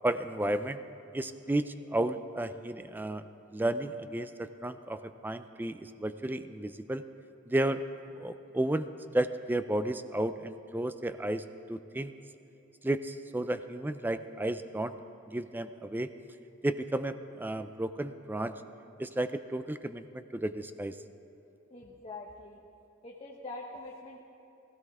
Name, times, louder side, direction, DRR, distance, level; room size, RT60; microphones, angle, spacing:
voice 1, 0.0-0.8 1.1-3.2 3.5-7.0 7.5-7.8 8.2-8.9 9.1-11.4 11.7-12.1 12.8-14.9 15.3-16.1 16.6-18.5 19.0-21.0, right 1 dB, 10° right, 11 dB, 0.4 m, -32 dB
voice 2, 21.7-22.6 23.0-24.2, left 2 dB, 30° left, -2 dB, 0.9 m, -44 dB
16.0 x 16.0 x 3.6 m, 2.9 s
head